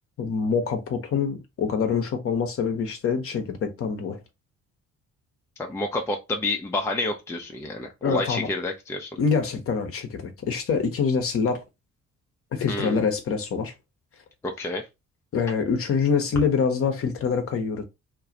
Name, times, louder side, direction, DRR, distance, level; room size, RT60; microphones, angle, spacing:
voice 1, 0.2-4.2 8.0-8.5 9.2-11.6 12.5-13.7 15.3-17.8, left 5 dB, 35° left, 0.7 m, -25 dB
voice 2, 5.6-9.1 12.7-13.1 14.4-14.9, left 2 dB, 5° left, 0.5 m, -29 dB
2.4 x 2.3 x 3.8 m
figure-of-eight pair, 45°, 39 cm